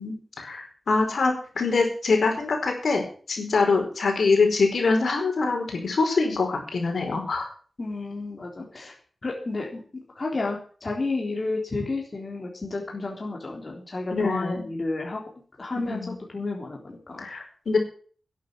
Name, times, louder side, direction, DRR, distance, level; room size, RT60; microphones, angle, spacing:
voice 1, 0.0-3.0 3.3-7.5 14.1-14.6 15.7-16.2 17.2-17.8, left 4 dB, 70° left, 3 dB, 4.7 m, -24 dB
voice 2, 7.8-8.9 9.2-15.2 15.6-17.3, left 3 dB, 35° left, 0 dB, 3.5 m, -31 dB
11.5 x 9.3 x 7.8 m, 0.43 s
wide cardioid pair, 120°, 0 cm